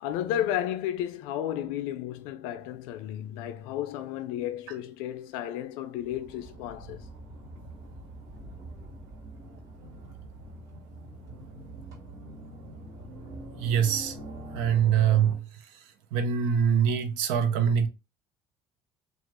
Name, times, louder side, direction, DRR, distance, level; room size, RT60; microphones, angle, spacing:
voice 1, 0.0-7.1, left 11 dB, 85° left, 0.4 m, -33 dB
sound 1, 6.0-15.3, right 1 dB, 40° right, 1.9 m, -44 dB
voice 2, 13.6-14.1 14.5-15.4 16.1-17.9, right 8 dB, 85° right, 0.5 m, -24 dB
2.9 x 2.4 x 2.9 m
supercardioid pair, 85°, 9 cm